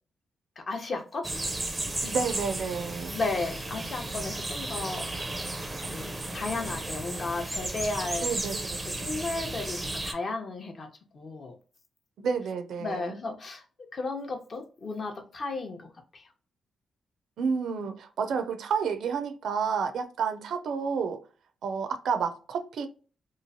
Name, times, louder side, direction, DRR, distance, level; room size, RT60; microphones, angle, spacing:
voice 1, 0.6-1.3 3.1-5.1 5.9-8.3 8.8-10.9 11.1-11.5 12.8-13.6 13.9-16.2, left 3 dB, 45° left, 0.6 m, -34 dB
sound 1, 1.2-10.1, right 2 dB, 15° right, 0.4 m, -34 dB
voice 2, 1.8-3.2 8.2-8.6 9.0-9.1 12.2-13.2 17.4-21.2 21.6-22.9, right 6 dB, 80° right, 0.4 m, -30 dB
3.0 x 2.3 x 2.6 m
cardioid pair, 110°, 0 cm